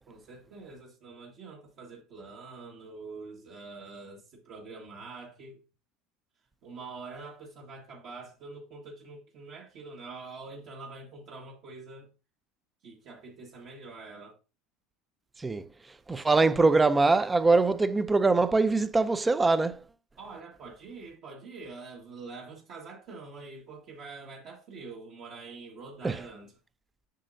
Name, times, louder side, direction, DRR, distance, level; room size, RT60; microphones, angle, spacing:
voice 1, 0.1-5.6 6.6-12.1 12.8-14.4 20.2-26.5, right 3 dB, 55° right, 1.7 m, -45 dB
voice 2, 16.1-19.8 26.0-26.2, right 3 dB, 15° right, 0.5 m, -23 dB
7.6 x 6.3 x 2.7 m
supercardioid pair, 100°, 0 cm